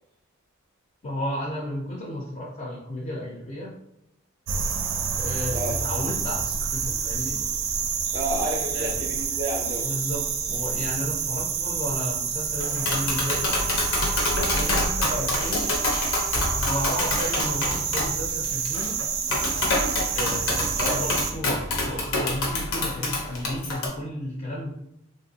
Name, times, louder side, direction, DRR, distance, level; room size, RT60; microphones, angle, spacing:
voice 1, 1.0-3.7 5.1-7.4 8.7-9.0 9.8-13.5 14.5-15.6 16.5-19.0 20.1-24.7, left 1 dB, 35° left, -3 dB, 0.5 m, -33 dB
sound 1, 4.5-21.3, right 6 dB, 75° right, 0.4 m, -28 dB
voice 2, 8.1-9.9 15.1-15.3 20.8-21.0, right 1 dB, 25° right, -2 dB, 0.5 m, -30 dB
Tap, 12.6-23.9, left 2 dB, 80° left, 0.8 m, -27 dB
3.4 x 2.5 x 2.7 m, 0.80 s
head